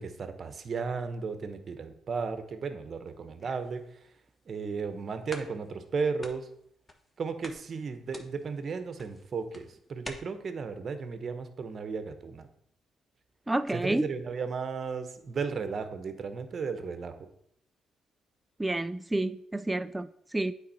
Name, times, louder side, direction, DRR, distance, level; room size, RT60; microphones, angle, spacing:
voice 1, 0.0-3.8 4.5-6.5 7.2-12.5 13.7-17.1, right 5 dB, 50° right, 9 dB, 0.9 m, -35 dB
sound 1, 3.1-3.8 4.4-4.5 4.9-5.0 5.3-5.9 6.2-7.2 7.4-10.1, left 1 dB, 20° left, 1.2 m, -47 dB
voice 2, 13.5-14.0 18.6-20.5, right 2 dB, 15° right, 11 dB, 0.3 m, -29 dB
8.7 x 4.0 x 4.2 m, 0.69 s
supercardioid pair, 60°, 0 cm